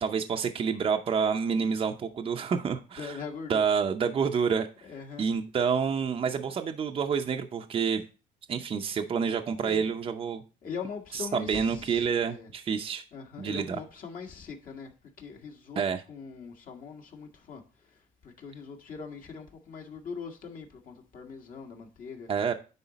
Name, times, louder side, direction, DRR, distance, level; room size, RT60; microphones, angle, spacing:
voice 1, 0.0-3.2 3.5-4.7 5.2-8.0 8.5-10.4 11.1-13.0 13.4-13.8 15.8-16.0 22.3-22.5, right 6 dB, 35° right, 0.6 m, -28 dB
voice 2, 2.9-3.6 4.8-5.4 9.6-9.9 10.6-12.5 13.1-14.9 15.2-22.5, left 5 dB, 55° left, 1.6 m, -42 dB
9.7 x 3.8 x 4.0 m
cardioid pair, 110°, 17 cm